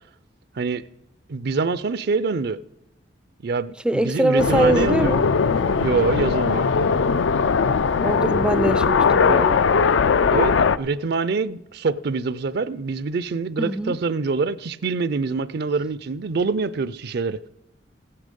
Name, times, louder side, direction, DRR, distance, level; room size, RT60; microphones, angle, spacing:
voice 1, 1.3-2.6 3.4-5.3 5.8-6.7 10.3-17.4, right 4 dB, 60° right, 0.5 m, -25 dB
voice 2, 3.8-5.2 7.9-9.7 13.6-14.0, right 1 dB, 5° right, 0.3 m, -23 dB
sound 1, 4.4-10.8, left 5 dB, 80° left, 0.4 m, -19 dB
15.5 x 9.9 x 5.3 m
head